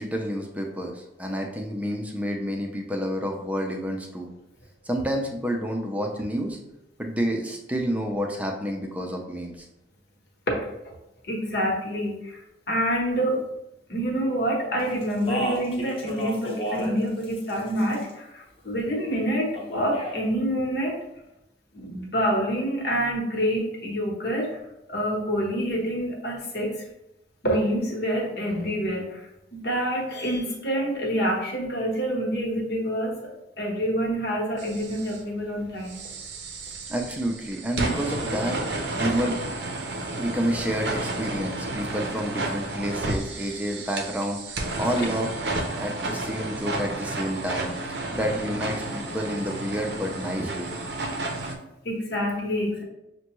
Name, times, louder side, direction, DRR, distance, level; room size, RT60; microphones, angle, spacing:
voice 1, 0.0-4.3 4.9-6.6 7.0-9.7 36.9-38.6 39.0-39.4 40.2-45.3 45.8-50.7, equal, 10° right, 2 dB, 0.5 m, -29 dB
voice 2, 11.3-12.4 12.7-13.4 13.9-21.0 21.7-24.5 24.9-26.8 27.4-29.3 29.5-33.3 33.6-36.0 51.8-52.8, equal, 60° left, -1 dB, 1.0 m, -27 dB
Speech, 15.0-17.0 17.2-18.1 19.5-20.2, equal, 30° left, 0.8 m, -32 dB
sound 1, 34.6-35.2 35.9-51.6, right 2 dB, 65° right, 0.6 m, -32 dB
6.2 x 2.2 x 3.0 m, 0.89 s
head